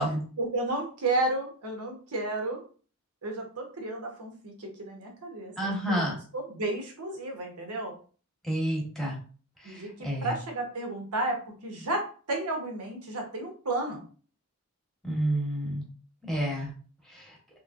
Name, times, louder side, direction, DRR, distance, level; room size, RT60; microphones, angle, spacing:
voice 1, 0.4-2.6 3.2-8.0 9.6-14.0, right 2 dB, 80° right, 2 dB, 1.0 m, -32 dB
voice 2, 5.6-6.2 8.4-9.2 9.6-10.3 15.0-15.8 16.3-16.7 17.1-17.3, right 1 dB, ahead, -2 dB, 1.0 m, -29 dB
3.1 x 3.1 x 2.4 m, 0.39 s
head